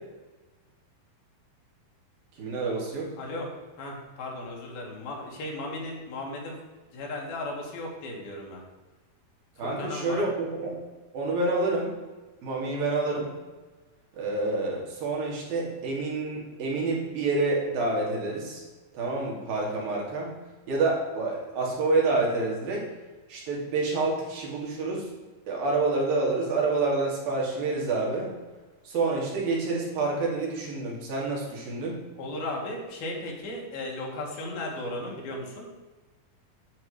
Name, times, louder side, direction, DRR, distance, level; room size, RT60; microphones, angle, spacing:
voice 1, 2.4-3.1 9.6-10.8 11.1-11.9 12.4-13.3 14.2-18.6 18.9-20.3 20.7-22.9 23.3-25.1 25.5-28.3 28.8-32.0, right 3 dB, 75° right, -3 dB, 4.1 m, -28 dB
voice 2, 3.2-3.5 3.8-6.6 6.9-8.6 9.6-10.2 32.2-35.7, left 2 dB, 80° left, -1 dB, 4.0 m, -36 dB
10.0 x 7.8 x 5.0 m, 1.2 s
omnidirectional pair, 4.2 m